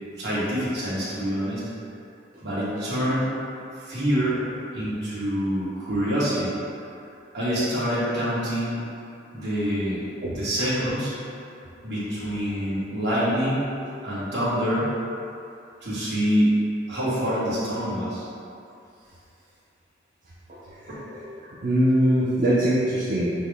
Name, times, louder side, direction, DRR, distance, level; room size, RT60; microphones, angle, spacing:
voice 1, 0.2-1.6 2.4-3.3 3.8-4.4 4.7-6.5 7.3-8.8 9.3-10.0 10.3-11.1 11.8-13.7 14.0-14.9 15.8-16.6 16.9-18.2 20.9-21.0, equal, 60° right, -11 dB, 1.5 m, -26 dB
voice 2, 20.5-21.3 21.6-23.3, right 1 dB, 45° right, -8 dB, 0.5 m, -23 dB
6.1 x 2.1 x 3.4 m, 2.6 s
head